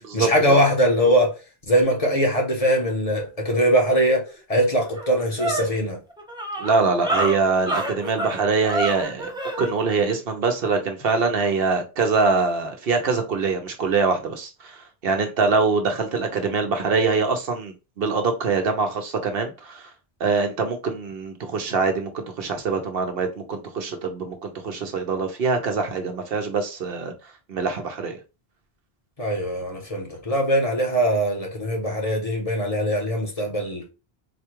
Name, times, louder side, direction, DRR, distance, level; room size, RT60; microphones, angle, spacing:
voice 1, 0.1-1.3 1.7-6.0 29.2-33.9, equal, 35° left, 1.0 m, -21 dB
sound 1, 4.3-4.4 4.7-9.7, right 1 dB, 5° right, 0.6 m, -28 dB
voice 2, 6.6-9.3 9.6-19.9 20.2-27.1 27.5-28.2, right 4 dB, 70° right, 0.9 m, -24 dB
4.2 x 2.3 x 2.9 m
omnidirectional pair, 1.0 m